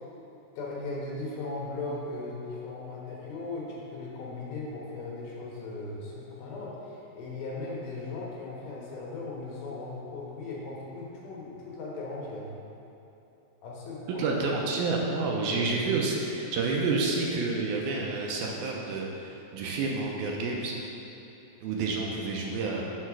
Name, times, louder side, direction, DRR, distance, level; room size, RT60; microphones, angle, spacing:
voice 1, 0.6-12.5 13.6-14.2 15.3-15.9, left 3 dB, 75° left, -4 dB, 3.1 m, -38 dB
voice 2, 14.1-20.8 21.6-22.8, right 3 dB, 80° right, -1 dB, 2.6 m, -29 dB
6.7 x 5.6 x 6.0 m, 2.9 s
omnidirectional pair, 4.5 m